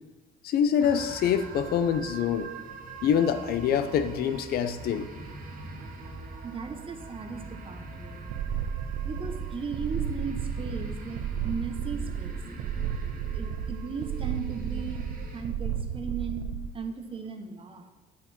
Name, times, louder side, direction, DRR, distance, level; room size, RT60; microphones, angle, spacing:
voice 1, 0.4-2.5 3.0-5.1, left 8 dB, 65° left, 11 dB, 0.7 m, -25 dB
sound 1, 0.8-15.4, right 2 dB, 55° right, 1.9 m, -43 dB
voice 2, 6.4-8.3 9.0-12.4 13.3-15.0 15.3-16.4 16.7-17.8, right 5 dB, 30° right, 5 dB, 1.2 m, -37 dB
sound 2, 8.3-16.7, right 8 dB, 80° right, 0.7 m, -33 dB
9.5 x 5.8 x 6.0 m, 1.2 s
cardioid pair, 110°, 17 cm